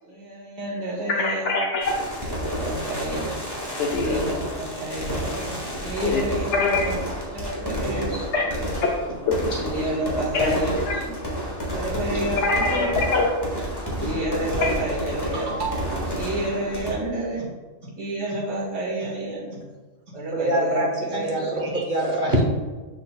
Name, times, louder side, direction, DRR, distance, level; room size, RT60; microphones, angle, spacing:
voice 1, 0.0-1.5 2.3-3.3 3.9-6.9 7.3-8.7 9.6-11.2 11.7-13.0 14.0-17.5 18.0-19.6 20.1-21.6 22.3-22.4, right 1 dB, 65° right, -5 dB, 2.0 m, -30 dB
voice 2, 1.1-2.3 3.8-4.3 6.0-6.2 6.5-6.9 8.3-8.4 9.2-9.7 10.3-10.5 10.9-11.0 12.4-13.3 14.6-14.7, left 3 dB, 70° left, -1 dB, 0.9 m, -24 dB
sound 1, 1.8-16.9, equal, 20° left, 1.8 m, -30 dB
voice 3, 20.3-22.4, right 1 dB, 45° right, 0 dB, 1.2 m, -24 dB
6.9 x 6.5 x 2.3 m, 1.3 s
omnidirectional pair, 1.3 m